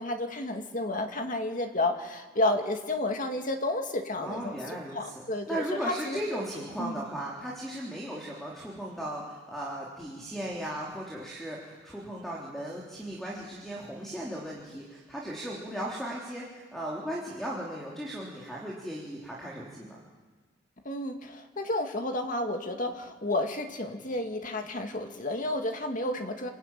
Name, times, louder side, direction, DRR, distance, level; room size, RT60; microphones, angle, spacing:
voice 1, 0.0-4.6 4.9-6.2 6.8-7.0 20.8-26.5, left 2 dB, 40° left, 4 dB, 2.2 m, -31 dB
voice 2, 4.2-5.2 5.5-20.0, right 1 dB, ahead, -4 dB, 3.5 m, -37 dB
27.5 x 20.5 x 9.1 m, 1.3 s
head